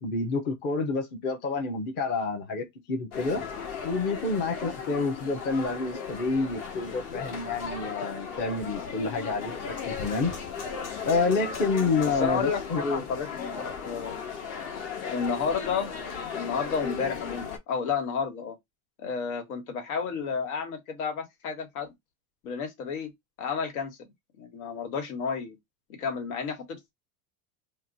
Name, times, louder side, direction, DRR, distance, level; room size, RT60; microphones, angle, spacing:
voice 1, 0.0-3.4 3.8-10.3 11.0-13.0, left 3 dB, 25° left, 0.5 m, -28 dB
sound 1, 3.1-17.6, left 6 dB, 50° left, 1.1 m, -36 dB
voice 2, 12.2-14.2 15.1-15.9 16.3-18.5 19.0-21.9 22.4-23.1 23.4-24.1 24.4-25.6 25.9-26.9, left 6 dB, 90° left, 1.5 m, -31 dB
2.9 x 2.2 x 3.8 m
cardioid pair, 170°, 42 cm